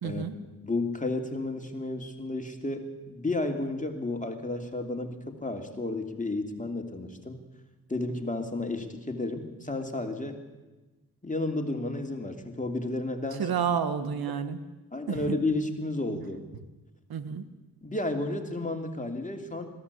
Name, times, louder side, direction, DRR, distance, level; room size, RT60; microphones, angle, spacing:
voice 1, 0.0-0.3 13.4-14.6 15.1-15.4 17.1-17.4, right 7 dB, 85° right, 11 dB, 1.4 m, -30 dB
voice 2, 0.6-7.4 7.9-10.4 11.2-13.5 14.9-16.4 17.8-19.7, left 2 dB, 20° left, 4 dB, 2.8 m, -32 dB
21.0 x 14.5 x 8.4 m, 1.2 s
cardioid pair, 60°, 35 cm